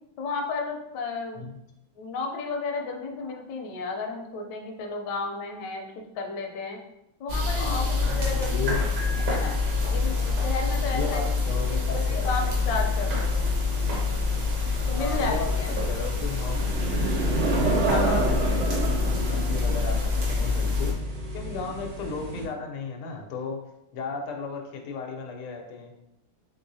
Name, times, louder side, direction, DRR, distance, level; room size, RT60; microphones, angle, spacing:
voice 1, 0.2-1.5 2.0-6.8 7.2-8.8 9.2-9.6 9.9-11.2 11.7-13.5 14.9-15.7 17.9-18.3, left 3 dB, 65° left, 2 dB, 1.1 m, -33 dB
sound 1, 7.3-20.9, left 4 dB, 60° right, 1.4 m, -26 dB
voice 2, 7.6-8.0 8.2-8.8 10.8-12.4 15.0-16.6 17.7-20.9 21.3-23.6 23.9-25.9, left 4 dB, 90° left, 2 dB, 1.6 m, -35 dB
Piano, 9.0-10.9, equal, 30° left, 0.4 m, -45 dB
sound 2, 13.7-22.4, right 2 dB, 80° right, 2.1 m, -30 dB
4.6 x 3.7 x 2.7 m, 0.85 s
omnidirectional pair, 2.4 m